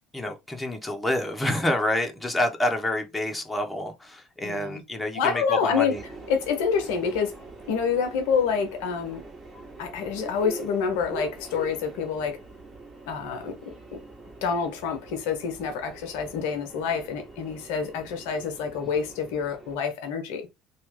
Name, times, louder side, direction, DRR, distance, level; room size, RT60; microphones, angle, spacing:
voice 1, 0.1-6.0, left 1 dB, 10° left, 1.0 m, -28 dB
voice 2, 4.4-4.8 5.1-5.9 6.3-7.3 7.7-9.2 9.8-12.4 13.1-13.6 13.9-14.0 14.4-20.5, left 6 dB, 70° left, 0.7 m, -27 dB
Subway metro underground, 5.9-19.7, right 3 dB, 25° right, 1.7 m, -43 dB
2.8 x 2.4 x 3.5 m
hypercardioid pair, 65°, 0 cm